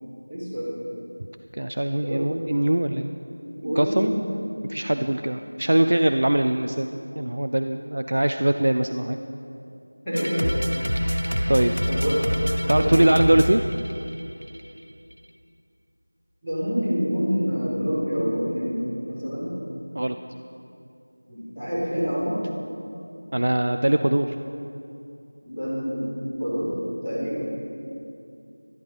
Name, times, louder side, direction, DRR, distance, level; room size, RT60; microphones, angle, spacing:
voice 1, 0.3-0.7 2.0-2.2 3.6-4.1 10.0-10.4 11.9-12.2 12.7-12.9 16.4-18.8 19.0-19.5 21.3-22.4 25.4-26.1 26.4-26.7 27.0-27.5, equal, ahead, -23 dB, 3.2 m, -26 dB
voice 2, 1.5-3.1 3.6-4.1 4.7-9.2 11.5-11.8 12.7-13.6 19.9-20.2 23.3-24.3, right 1 dB, 40° right, 7 dB, 0.4 m, -22 dB
sound 1, 10.1-14.6, equal, 85° right, 1.4 m, -26 dB
13.5 x 12.0 x 5.2 m, 2.6 s
figure-of-eight pair, 175°, 0 cm